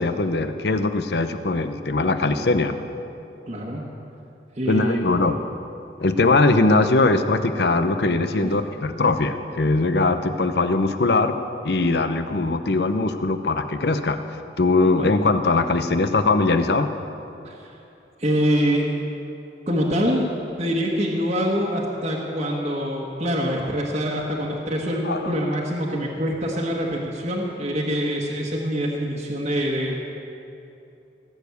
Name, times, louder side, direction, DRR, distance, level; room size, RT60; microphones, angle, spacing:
voice 1, 0.0-2.8 4.7-5.4 6.0-11.4 11.6-14.2 14.6-16.9 25.0-25.3, left 3 dB, 65° left, 9 dB, 0.7 m, -21 dB
voice 2, 3.5-3.9 4.5-5.1 8.4-8.5 15.0-15.1 17.4-17.7 18.2-18.8 19.7-20.3 20.6-30.0, equal, 35° right, -3 dB, 1.4 m, -25 dB
18.0 x 7.2 x 8.3 m, 2.8 s
head